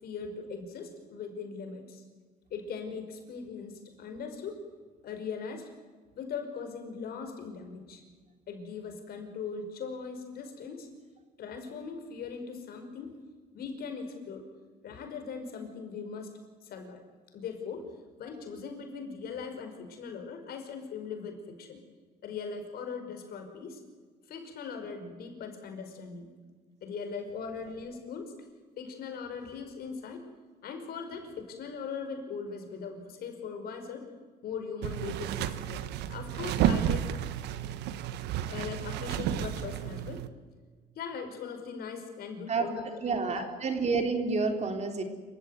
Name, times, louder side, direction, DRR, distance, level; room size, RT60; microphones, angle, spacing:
voice 1, 0.0-2.0 2.5-4.6 5.0-5.7 6.2-8.0 8.5-10.9 11.4-13.1 13.5-14.4 14.8-16.3 16.6-17.0 17.3-17.9 18.2-21.8 22.2-23.8 24.3-26.3 26.8-28.3 28.8-30.2 30.6-34.0 34.4-35.8 36.1-37.0 38.5-40.2 41.0-43.5, left 5 dB, 65° left, 5 dB, 5.5 m, -40 dB
sound 1, 34.8-40.3, right 10 dB, 85° right, 1.3 m, -31 dB
voice 2, 43.0-45.0, right 4 dB, 40° right, 5 dB, 3.7 m, -29 dB
27.0 x 16.0 x 9.6 m, 1.4 s
cardioid pair, 110°, 17 cm